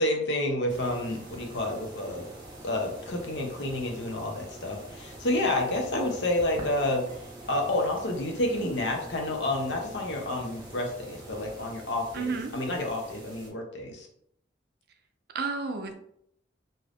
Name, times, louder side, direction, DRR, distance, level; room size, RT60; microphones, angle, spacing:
voice 1, 0.0-2.3 2.6-7.0 7.5-14.1, left 1 dB, 70° left, 2 dB, 0.7 m, -29 dB
sound 1, 0.7-13.5, right 1 dB, 25° right, 0.8 m, -45 dB
voice 2, 12.1-12.5 15.3-15.9, right 4 dB, 60° right, 6 dB, 0.4 m, -31 dB
2.6 x 2.4 x 3.3 m, 0.70 s
head